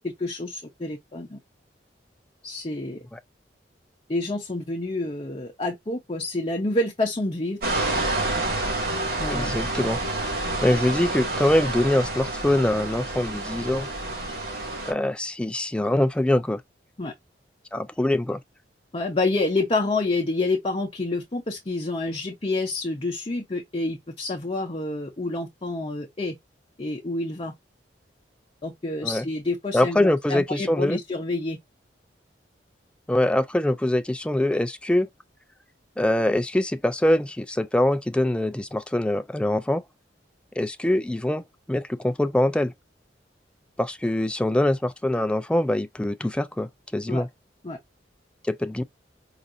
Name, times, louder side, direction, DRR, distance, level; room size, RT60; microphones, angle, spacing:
voice 1, 0.2-1.4 2.4-3.0 4.1-7.6 9.2-9.5 17.0-17.1 18.9-26.3 26.8-27.5 28.6-31.6 47.1-47.2 47.6-47.8, left 2 dB, 30° left, 0.8 m, -28 dB
sound 1, 7.6-14.9, right 2 dB, 55° right, 2.1 m, -28 dB
voice 2, 9.3-10.0 10.6-13.9 14.9-16.6 17.7-18.4 29.0-29.3 29.7-31.0 33.1-35.1 36.0-39.8 40.6-42.7 43.8-47.3 48.5-48.8, left 1 dB, 5° left, 0.3 m, -23 dB
4.8 x 2.6 x 2.6 m
head